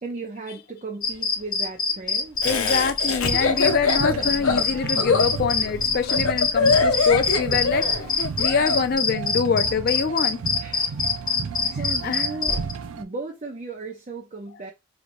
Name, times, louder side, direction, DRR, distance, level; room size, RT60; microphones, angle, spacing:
voice 1, 0.0-2.4 3.5-4.6 10.6-11.2 11.6-12.6 12.9-14.7, right 3 dB, 35° right, 0.5 m, -36 dB
sound 1, 1.0-12.7, left 5 dB, 20° left, 0.8 m, -24 dB
Laughter, 2.4-8.8, left 4 dB, 80° left, 0.6 m, -23 dB
voice 2, 2.4-7.9 8.4-10.4 12.0-12.2, left 5 dB, 45° left, 0.3 m, -25 dB
sound 2, 3.2-13.0, right 5 dB, 80° right, 0.4 m, -34 dB
4.2 x 2.9 x 2.6 m
head